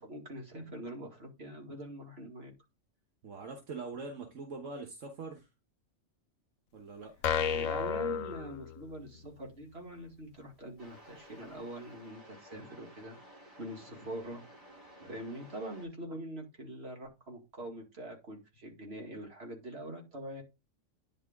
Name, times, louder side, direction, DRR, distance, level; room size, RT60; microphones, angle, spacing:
voice 1, 0.0-2.5 7.5-13.2 13.6-14.5 15.0-20.4, right 1 dB, 55° right, 2.4 m, -44 dB
voice 2, 3.2-5.5 6.7-7.1, right 3 dB, 80° right, 1.5 m, -43 dB
sound 1, 7.2-9.2, left 7 dB, 80° left, 1.0 m, -32 dB
sound 2, 10.8-15.9, equal, 25° right, 3.1 m, -55 dB
10.0 x 3.7 x 3.5 m
omnidirectional pair, 1.3 m